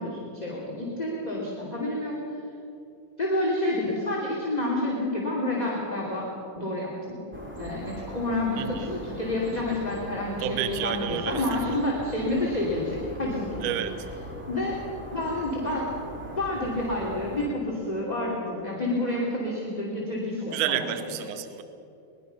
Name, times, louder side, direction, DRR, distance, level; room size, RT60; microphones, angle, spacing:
voice 1, 0.0-2.2 3.2-6.2 6.5-7.2 7.6-13.7 14.5-14.7 15.1-16.0 16.4-21.2, left 1 dB, 15° left, -4 dB, 2.5 m, -29 dB
sound 1, 7.3-17.5, equal, 5° right, 1.9 m, -40 dB
voice 2, 8.6-8.9 10.4-11.6 13.6-14.1 20.4-21.6, right 11 dB, 75° right, 11 dB, 2.1 m, -30 dB
23.0 x 21.0 x 5.8 m, 2.7 s
omnidirectional pair, 4.0 m